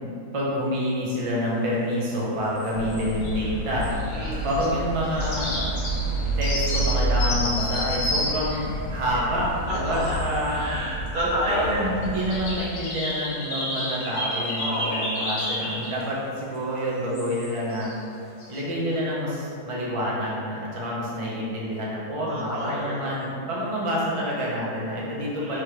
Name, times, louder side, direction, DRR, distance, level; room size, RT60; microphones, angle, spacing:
voice 1, 0.3-3.9 4.4-5.7 6.4-10.7 11.5-18.0 18.5-25.6, equal, 45° right, -6 dB, 0.4 m, -28 dB
sound 1, 2.6-3.5 3.8-4.7 5.0-9.3 9.9-10.5 10.9-11.1 11.5-11.6 12.0-16.0 16.8-16.9 17.1-18.0 18.3-18.6, left 1 dB, 40° left, 1.1 m, -31 dB
sound 2, 2.7-12.6, right 1 dB, 75° right, 1.4 m, -30 dB
voice 2, 4.1-4.5 9.7-11.9 14.5-15.2 22.3-23.0 25.4-25.6, equal, 60° right, -7 dB, 1.5 m, -30 dB
3.6 x 3.0 x 4.6 m, 2.7 s
omnidirectional pair, 1.8 m